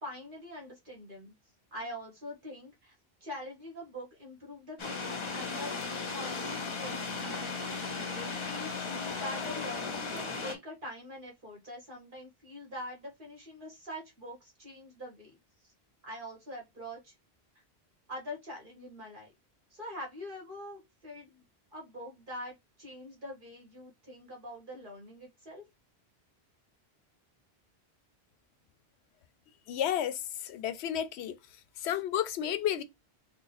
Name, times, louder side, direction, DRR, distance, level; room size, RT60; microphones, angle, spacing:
voice 1, 0.0-1.3 1.7-2.9 3.2-5.7 6.1-15.4 15.6-15.7 16.0-17.1 18.1-19.3 19.7-21.4 21.7-25.6, left 1 dB, 55° right, 1.4 m, -44 dB
sound 1, 4.8-10.6, left 4 dB, 35° left, 0.6 m, -36 dB
voice 2, 29.7-31.4 31.8-32.8, left 10 dB, 90° left, 0.8 m, -32 dB
3.8 x 2.1 x 4.0 m
omnidirectional pair, 1.1 m